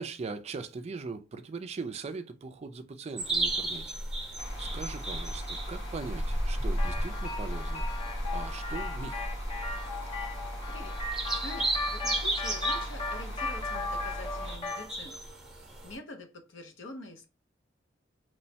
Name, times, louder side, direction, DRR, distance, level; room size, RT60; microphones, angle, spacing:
voice 1, 0.0-4.0 4.6-9.3, right 4 dB, 35° right, 0.3 m, -40 dB
sound 1, 3.2-16.0, right 1 dB, 5° right, 0.8 m, -35 dB
sound 2, 4.4-14.6, equal, 65° left, 1.1 m, -39 dB
sound 3, 6.8-14.9, left 2 dB, 30° left, 0.6 m, -37 dB
voice 2, 10.7-11.0 11.3-15.2 15.8-17.3, left 2 dB, 80° left, 0.7 m, -46 dB
3.0 x 2.1 x 2.7 m
head